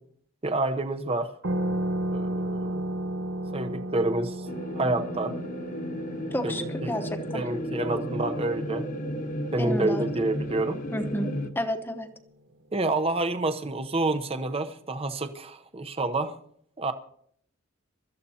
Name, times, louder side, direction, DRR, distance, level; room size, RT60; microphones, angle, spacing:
voice 1, 0.4-1.3 2.1-2.8 3.5-4.5 4.7-5.4 6.4-6.9 7.3-8.9 9.5-10.8 12.7-16.4 16.8-16.9, right 2 dB, 30° right, 9 dB, 0.8 m, -28 dB
sound 1, 1.4-10.6, right 1 dB, 75° right, 1.0 m, -34 dB
sound 2, 4.5-11.5, equal, 40° left, 1.1 m, -34 dB
voice 2, 6.3-7.4 9.6-10.1 10.9-12.1, equal, 10° left, 7 dB, 1.0 m, -31 dB
24.0 x 13.5 x 2.8 m, 0.64 s
head